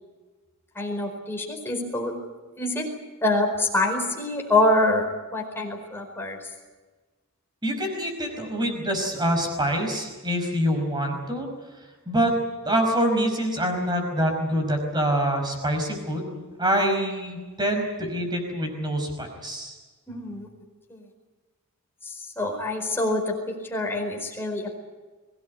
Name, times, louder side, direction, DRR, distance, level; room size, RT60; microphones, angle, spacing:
voice 1, 0.8-2.2 2.6-2.9 3.2-5.0 5.3-6.4 20.1-20.5 20.9-21.0 22.4-23.3 23.7-24.8, left 2 dB, 10° left, 1 dB, 4.5 m, -25 dB
voice 2, 7.6-11.5 12.1-12.3 12.6-19.8, equal, 20° right, 4 dB, 5.3 m, -25 dB
23.5 x 18.0 x 9.5 m, 1.3 s
head